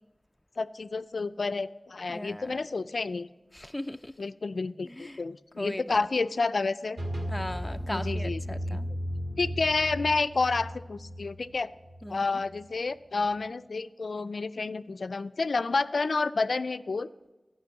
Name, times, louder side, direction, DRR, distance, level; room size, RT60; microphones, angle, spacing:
voice 1, 0.6-3.3 4.2-7.0 7.9-8.4 9.4-11.7 12.1-17.1, left 3 dB, 85° left, 0.3 m, -30 dB
voice 2, 2.1-2.6 3.5-4.1 4.8-5.2 5.6-6.0 7.3-8.9 12.0-12.4, left 1 dB, 20° left, 0.4 m, -38 dB
sound 1, 7.0-12.7, equal, 75° right, 2.0 m, -35 dB
13.0 x 5.9 x 9.0 m
wide cardioid pair, 45°, 0 cm